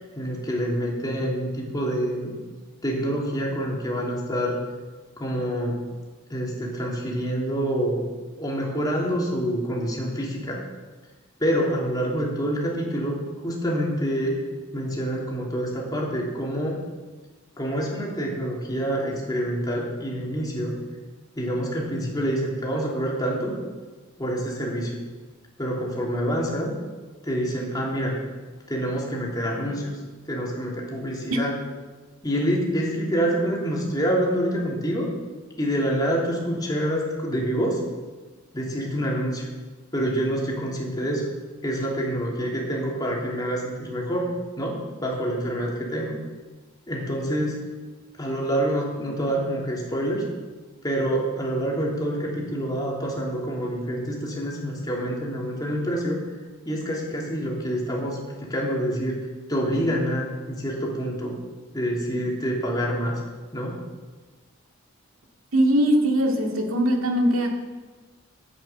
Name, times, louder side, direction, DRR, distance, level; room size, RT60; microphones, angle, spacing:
voice 1, 0.0-2.3 2.8-4.6 5.2-5.8 6.3-8.1 8.4-10.6 11.4-13.2 13.4-14.4 14.7-16.8 17.6-20.7 21.4-23.6 24.2-24.9 25.6-26.7 27.2-28.2 28.7-29.9 30.3-31.5 32.2-35.1 35.6-37.8 38.5-39.5 39.9-41.2 41.6-44.3 44.6-46.2 46.9-47.6 48.2-50.3 50.8-56.2 56.6-59.2 59.5-61.3 61.7-63.2 63.5-63.8, equal, 20° left, -3 dB, 3.1 m, -27 dB
voice 2, 65.5-67.5, equal, 85° right, 2 dB, 2.2 m, -21 dB
11.0 x 8.7 x 8.0 m, 1.3 s
head